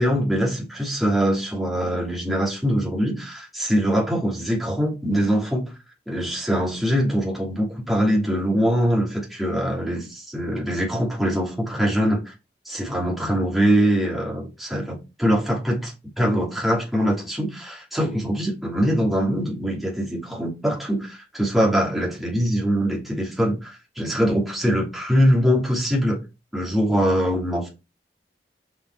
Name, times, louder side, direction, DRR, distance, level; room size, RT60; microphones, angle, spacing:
voice 1, 0.0-5.7 6.1-12.3 12.6-15.8 16.2-26.2 26.5-27.7, equal, ahead, 2.7 m, -23 dB
6.4 x 5.7 x 4.5 m
head